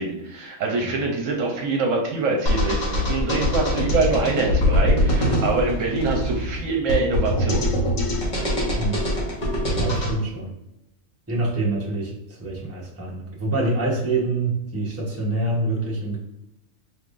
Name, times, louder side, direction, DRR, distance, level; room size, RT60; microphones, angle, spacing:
voice 1, 0.0-7.7, right 3 dB, 70° right, 1 dB, 1.0 m, -25 dB
sound 1, 2.5-10.1, left 1 dB, 40° left, 1.1 m, -23 dB
voice 2, 9.7-10.5 11.3-16.2, right 2 dB, 10° right, -5 dB, 0.9 m, -26 dB
4.6 x 3.4 x 2.5 m, 0.87 s
omnidirectional pair, 1.4 m